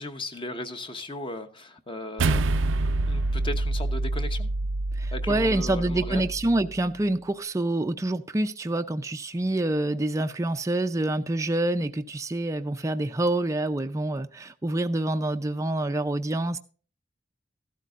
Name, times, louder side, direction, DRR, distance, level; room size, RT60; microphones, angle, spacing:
voice 1, 0.0-2.6 3.0-4.5 5.1-6.3, left 1 dB, 25° left, 0.9 m, -36 dB
sound 1, 2.2-6.7, right 2 dB, 85° right, 0.6 m, -27 dB
voice 2, 5.0-16.6, right 1 dB, 15° right, 0.5 m, -27 dB
14.0 x 12.0 x 2.4 m
head